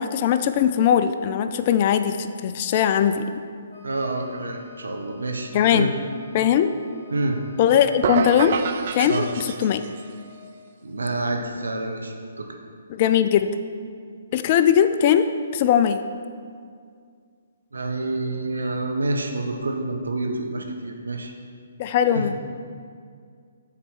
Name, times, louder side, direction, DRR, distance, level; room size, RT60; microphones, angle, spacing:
voice 1, 0.0-3.3 5.5-5.9 6.3-6.7 7.6-8.5 8.9-9.8 12.9-13.5 14.3-15.3 15.5-16.0 21.8-22.3, left 9 dB, 40° left, 10 dB, 0.4 m, -20 dB
Wind instrument woodwind instrument, 3.7-10.4, left 3 dB, 65° left, 1.2 m, -50 dB
voice 2, 3.8-5.9 7.1-7.4 9.0-9.3 10.8-12.5 17.7-21.3 22.1-22.2, right 2 dB, 80° right, 3 dB, 1.0 m, -28 dB
sound 1, 8.0-10.1, right 6 dB, 50° right, 0.4 m, -28 dB
7.4 x 4.4 x 6.3 m, 2.2 s
figure-of-eight pair, 140°, 0 cm